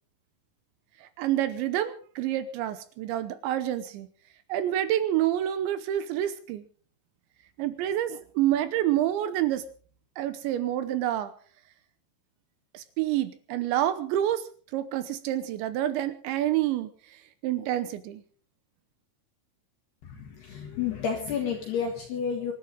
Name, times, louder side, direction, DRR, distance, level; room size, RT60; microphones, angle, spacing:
voice 1, 1.2-4.1 4.5-6.6 7.6-9.6 10.2-11.3 12.7-14.4 14.7-16.9 17.4-18.2, right 12 dB, 75° right, 12 dB, 2.9 m, -28 dB
voice 2, 20.0-22.5, left 7 dB, 60° left, 1 dB, 3.4 m, -31 dB
26.0 x 12.0 x 3.9 m, 0.43 s
omnidirectional pair, 5.9 m